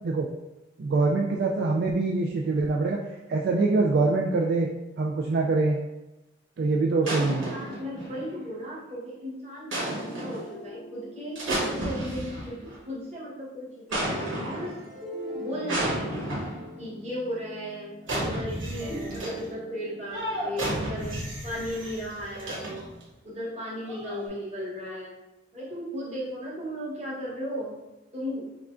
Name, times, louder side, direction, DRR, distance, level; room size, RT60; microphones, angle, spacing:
voice 1, 0.8-3.0 3.3-4.7 5.0-5.8 6.6-7.5, right 3 dB, 55° right, 0 dB, 0.3 m, -24 dB
sound 1, 7.0-8.5 9.7-10.5 11.4-12.8 13.9-14.9 15.7-16.7 18.0-19.5 20.1-23.0 23.8-24.3, right 1 dB, 85° right, 1.4 m, -32 dB
voice 2, 7.2-14.8 15.4-16.1 16.8-17.9 18.2-21.2 21.4-22.8 23.2-25.1 25.5-27.7 28.1-28.5, equal, 35° right, -7 dB, 1.2 m, -36 dB
sound 2, 9.8-12.9 13.9-18.2 18.5-22.7, equal, ahead, 0.6 m, -43 dB
5.8 x 2.2 x 2.5 m, 1.0 s
head